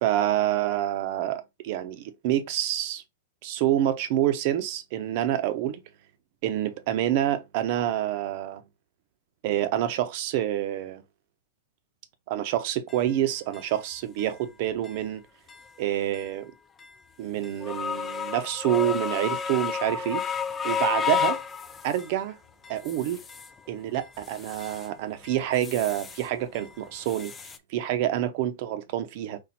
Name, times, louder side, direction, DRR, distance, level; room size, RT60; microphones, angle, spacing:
voice 1, 0.0-3.0 3.4-5.8 6.4-8.6 9.4-11.0 12.3-15.2 15.8-16.5 17.2-20.2 20.6-21.4 21.8-22.4 22.7-23.2 23.7-27.3 27.7-29.4, right 12 dB, 45° right, 0.7 m, -27 dB
sound 1, 12.9-13.0 13.5-13.6 14.2-14.3 14.8-15.0 15.5-15.7 16.1-16.3 16.8-16.9 17.4-22.2 22.6-23.5 23.9-24.9 25.2-26.3 26.5-27.6, left 7 dB, 15° left, 0.4 m, -32 dB
4.2 x 2.4 x 4.1 m
supercardioid pair, 155°, 0 cm